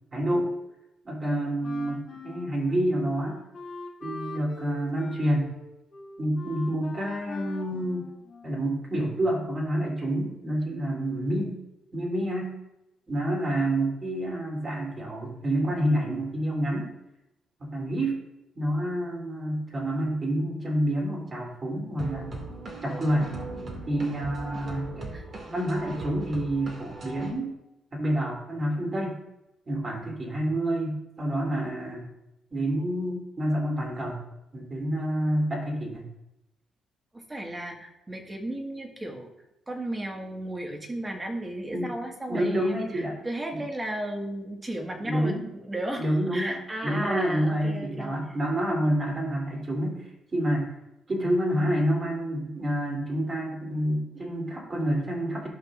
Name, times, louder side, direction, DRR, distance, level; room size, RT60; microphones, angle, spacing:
voice 1, 0.1-0.5 1.0-3.4 4.0-5.6 6.2-8.1 8.4-11.6 11.9-12.6 13.1-16.9 17.6-18.2 18.5-22.3 22.8-23.3 23.9-25.1 25.4-27.5 27.9-29.2 29.7-32.1 32.5-34.3 34.5-36.1 41.7-41.9 42.3-43.1 43.5-43.6 45.0-45.4 45.9-50.7 51.1-55.5, right 1 dB, 35° right, -2 dB, 3.1 m, -28 dB
Wind instrument woodwind instrument, 1.6-8.8, left 3 dB, 55° left, 1.8 m, -42 dB
sound 1, 22.0-27.3, right 3 dB, 50° right, 2.2 m, -39 dB
voice 2, 37.1-39.3 39.7-48.1, right 1 dB, 20° right, 2 dB, 1.7 m, -34 dB
15.0 x 6.0 x 2.5 m, 0.91 s
cardioid pair, 90°, 0 cm